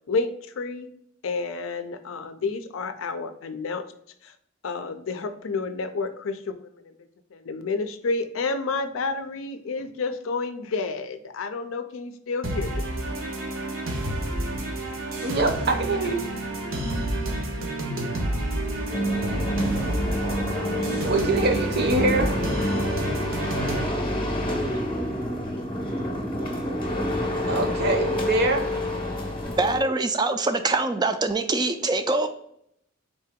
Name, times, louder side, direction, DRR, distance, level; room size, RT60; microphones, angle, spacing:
voice 1, 0.1-0.9 1.2-3.9 4.2-4.3 4.6-6.9 7.3-12.8, left 4 dB, 80° left, 9 dB, 0.5 m, -30 dB
sound 1, 12.4-23.9, right 1 dB, 80° right, 0.9 m, -29 dB
voice 2, 15.2-16.3 21.0-22.4 27.5-28.7, right 2 dB, 50° right, 5 dB, 0.6 m, -24 dB
sound 2, 18.9-29.8, equal, 25° left, 0.8 m, -28 dB
voice 3, 29.4-32.3, right 2 dB, 20° right, 8 dB, 0.3 m, -24 dB
3.9 x 2.8 x 3.5 m, 0.72 s
head